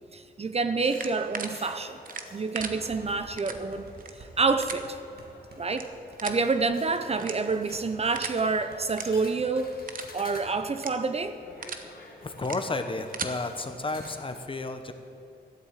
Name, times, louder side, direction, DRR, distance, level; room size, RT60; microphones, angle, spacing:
voice 1, 0.1-2.0 2.3-3.8 4.4-5.0 5.6-5.9 6.2-9.8 10.1-11.4, right 4 dB, 35° right, 10 dB, 0.7 m, -27 dB
sound 1, 0.8-14.4, left 3 dB, 60° left, 2.1 m, -51 dB
sound 2, 0.9-1.5 2.0-2.7 3.4-3.6 3.9-4.1 4.6-4.8 5.7-5.8 6.2-6.4 7.2-7.6 8.1-8.4 8.8-9.0 9.4-9.5 9.9-10.1 10.7-10.9 11.4-11.8 12.4-12.6 12.9-13.3, right 5 dB, 55° right, 1.1 m, -36 dB
sound 3, 2.6-10.5 10.8-10.9 11.2-11.6, right 3 dB, 70° right, 2.3 m, -50 dB
voice 2, 12.2-14.9, left 2 dB, 30° left, 7 dB, 1.2 m, -32 dB
13.5 x 8.2 x 8.3 m, 2.6 s
cardioid pair, 95°, 17 cm